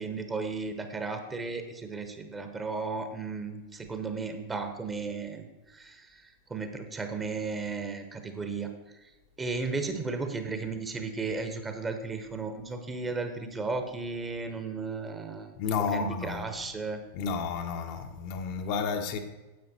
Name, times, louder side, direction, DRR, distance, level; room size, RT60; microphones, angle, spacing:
voice 1, 0.0-5.5 5.7-6.1 6.5-8.7 9.4-15.5 15.9-17.0, right 4 dB, 15° right, 7 dB, 1.1 m, -34 dB
voice 2, 15.6-16.5 17.1-19.2, left 5 dB, 45° left, 5 dB, 0.9 m, -31 dB
9.5 x 8.0 x 4.4 m, 1.1 s
figure-of-eight pair, 90°, 0 cm